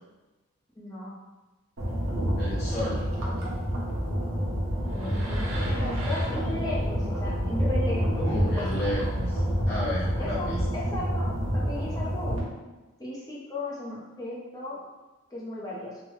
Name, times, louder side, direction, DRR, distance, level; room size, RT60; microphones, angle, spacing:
voice 1, 0.8-1.2 4.9-8.8 10.2-12.4 13.0-14.8 15.3-16.0, left 2 dB, 20° left, -6 dB, 0.6 m, -36 dB
sound 1, 1.8-12.4, equal, 80° right, 0.8 m, -28 dB
voice 2, 2.4-3.0 8.2-9.4 9.7-10.6, left 1 dB, 50° left, -9 dB, 1.0 m, -32 dB
3.0 x 2.2 x 3.1 m, 1.1 s
head